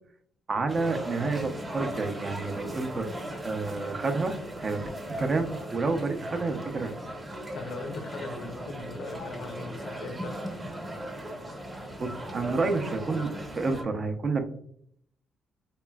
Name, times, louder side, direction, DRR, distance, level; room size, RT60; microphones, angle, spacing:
voice 1, 0.5-3.1 3.4-4.9 5.2-6.9 12.0-14.4, right 3 dB, 40° right, 6 dB, 0.6 m, -29 dB
sound 1, 0.7-13.8, right 1 dB, 20° right, 1.0 m, -38 dB
voice 2, 7.5-10.4, left 3 dB, 75° left, 4 dB, 0.6 m, -39 dB
4.1 x 2.9 x 2.3 m, 0.65 s
cardioid pair, 90°, 0 cm